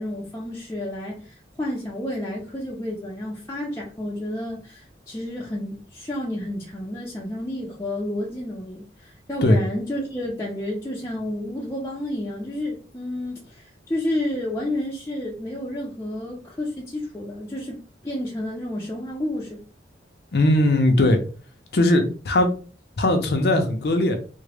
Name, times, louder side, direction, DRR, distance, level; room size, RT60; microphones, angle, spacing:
voice 1, 0.0-17.8 18.0-19.6, left 1 dB, 15° left, 0.5 m, -30 dB
voice 2, 20.3-21.2 21.7-22.5 23.0-24.2, left 1 dB, 60° left, 0.6 m, -19 dB
3.6 x 2.1 x 3.3 m
head